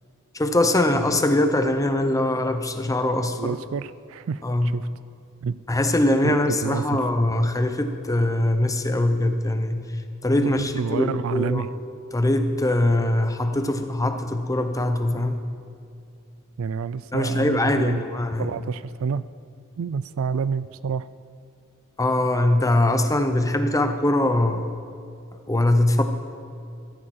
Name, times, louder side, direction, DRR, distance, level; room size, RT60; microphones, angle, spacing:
voice 1, 0.3-3.6 4.4-4.7 5.7-9.8 10.2-11.6 12.1-15.4 17.1-18.5 22.0-24.7 25.5-26.0, left 1 dB, 15° left, 7 dB, 0.8 m, -22 dB
voice 2, 3.4-4.9 5.4-5.6 6.2-6.3 6.6-7.0 10.4-11.7 16.6-18.0 18.4-19.2 19.8-21.1, right 6 dB, 65° right, 16 dB, 0.4 m, -28 dB
15.0 x 13.0 x 4.4 m, 2.4 s
head